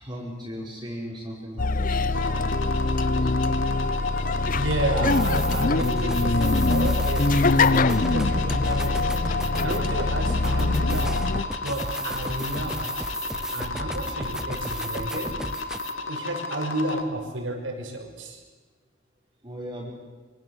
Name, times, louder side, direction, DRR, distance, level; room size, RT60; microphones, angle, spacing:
voice 1, 0.0-3.6 19.4-19.9, equal, 20° right, -4 dB, 5.0 m, -38 dB
sound 1, 1.6-11.4, left 3 dB, 45° left, 0.8 m, -23 dB
sound 2, 2.1-17.0, left 3 dB, 90° left, 2.4 m, -34 dB
voice 2, 4.5-9.2 9.6-11.3 11.6-12.9 13.5-15.4 16.1-18.4, right 1 dB, 75° right, 3 dB, 6.0 m, -31 dB
sound 3, 5.0-15.9, right 1 dB, 5° right, 0.8 m, -35 dB
26.0 x 25.5 x 8.1 m, 1.3 s
head